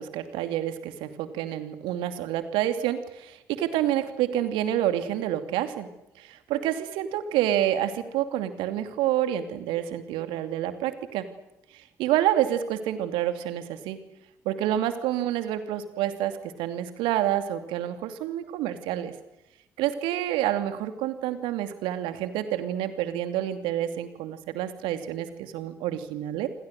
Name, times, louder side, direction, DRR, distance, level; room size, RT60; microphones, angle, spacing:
voice 1, 0.0-5.9 6.2-11.2 11.7-14.0 14.4-19.1 19.8-26.5, right 12 dB, 65° right, 9 dB, 2.6 m, -28 dB
27.5 x 26.5 x 6.6 m, 0.91 s
figure-of-eight pair, 45°, 9 cm